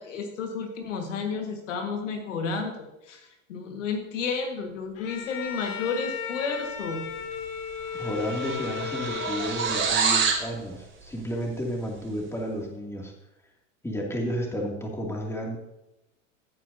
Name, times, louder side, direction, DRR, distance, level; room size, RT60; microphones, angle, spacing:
voice 1, 0.0-3.2 3.5-7.1, left 5 dB, 70° left, 4 dB, 1.7 m, -31 dB
Bowed string instrument, 4.9-10.2, left 8 dB, 40° left, 1.6 m, -35 dB
sound 1, 7.3-7.5 7.8-10.5, right 5 dB, 30° right, 2.9 m, -27 dB
voice 2, 8.0-13.1 13.8-15.6, equal, 5° left, 0 dB, 2.4 m, -32 dB
15.5 x 9.1 x 2.7 m, 0.91 s
hypercardioid pair, 85°, 38 cm